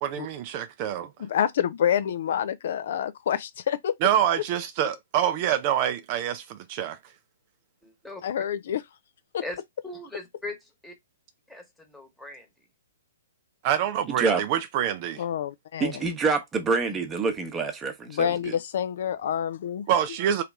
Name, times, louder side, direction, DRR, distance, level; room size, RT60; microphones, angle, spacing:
voice 1, 0.0-1.1 4.0-7.0 13.6-15.2 19.9-20.4, right 10 dB, 35° right, 0.4 m, -26 dB
voice 2, 1.2-3.9 8.2-8.8 9.3-9.4 15.2-15.9 18.1-19.9, left 9 dB, 50° left, 0.4 m, -27 dB
voice 3, 7.8-8.2 9.4-9.6 9.8-10.5 10.8-10.9 11.5-12.5, left 2 dB, 5° left, 1.2 m, -39 dB
voice 4, 14.1-14.4 15.8-18.6, right 4 dB, 15° right, 0.9 m, -27 dB
3.2 x 2.9 x 3.5 m
figure-of-eight pair, 120°, 0 cm